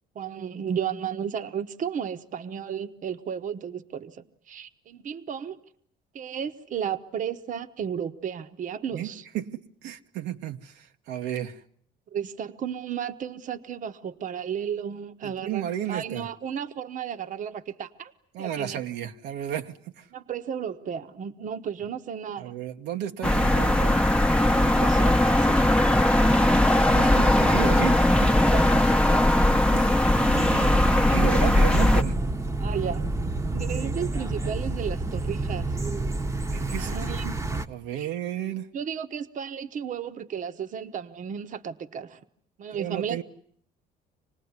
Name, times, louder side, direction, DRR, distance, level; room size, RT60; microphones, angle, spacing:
voice 1, 0.1-5.6 6.1-9.2 12.1-18.1 18.4-18.8 20.1-22.5 24.5-25.6 26.9-27.3 28.5-29.0 30.5-30.6 31.1-31.4 31.9-32.0 32.6-33.0 33.5-35.8 36.8-37.4 38.0-38.1 38.7-42.2 42.6-43.2, right 8 dB, 50° right, 1.2 m, -34 dB
voice 2, 9.3-11.6 15.2-16.3 18.3-20.1 22.4-24.0 26.8-28.5 29.5-30.9 31.1-32.2 36.5-36.9 37.5-38.7 42.7-43.2, right 11 dB, 80° right, 1.2 m, -33 dB
sound 1, 23.2-32.0, left 1 dB, 5° left, 1.0 m, -20 dB
sound 2, 30.1-37.7, right 2 dB, 15° right, 1.1 m, -29 dB
26.5 x 19.5 x 9.7 m
cardioid pair, 110°, 17 cm